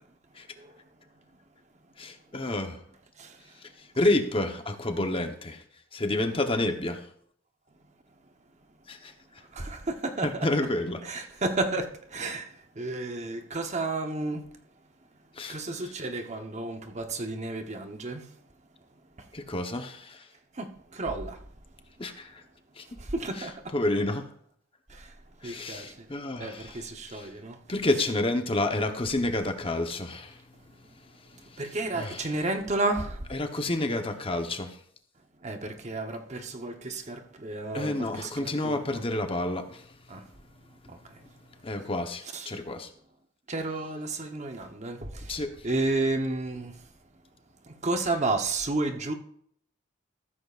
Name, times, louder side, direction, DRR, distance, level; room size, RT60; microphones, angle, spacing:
voice 1, 2.0-2.8 4.0-5.6 5.9-7.1 8.9-9.1 10.2-11.2 15.4-15.6 19.3-20.2 22.0-22.4 22.8-22.9 23.4-23.5 23.7-24.3 25.4-26.8 27.1-27.3 27.7-30.4 31.5-32.4 33.3-34.8 37.7-40.0 41.6-42.9 45.3-45.5, left 2 dB, 25° left, 1.0 m, -29 dB
voice 2, 9.5-10.5 11.0-14.5 15.5-18.3 19.2-19.3 20.6-21.4 23.0-23.7 24.9-25.1 25.4-26.1 26.4-27.6 31.6-33.3 35.4-39.0 40.1-40.2 40.9-41.2 42.3-42.5 43.5-46.8 47.7-49.1, right 2 dB, 35° right, 1.0 m, -32 dB
14.5 x 13.5 x 2.5 m
head